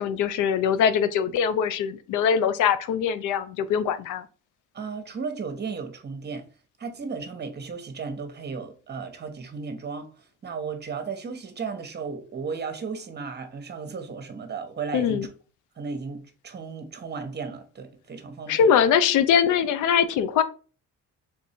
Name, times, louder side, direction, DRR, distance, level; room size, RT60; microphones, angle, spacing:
voice 1, 0.0-4.3 14.9-15.3 18.5-20.4, left 7 dB, 85° left, 0.5 m, -22 dB
voice 2, 4.7-6.5 6.8-15.3 15.8-18.7, right 5 dB, 35° right, 0.9 m, -35 dB
3.6 x 2.6 x 4.2 m
cardioid pair, 90°, 30 cm